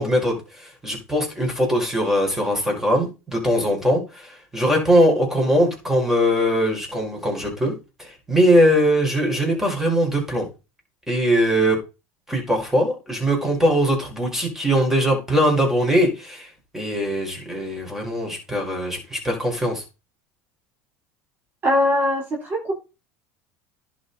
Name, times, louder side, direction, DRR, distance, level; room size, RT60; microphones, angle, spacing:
voice 1, 0.0-7.7 8.0-10.5 11.1-11.8 12.3-19.8, equal, 5° right, 1 dB, 4.8 m, -21 dB
voice 2, 21.6-22.7, left 1 dB, 30° right, -1 dB, 3.6 m, -21 dB
11.0 x 6.1 x 4.1 m, 0.28 s
supercardioid pair, 115°, 7 cm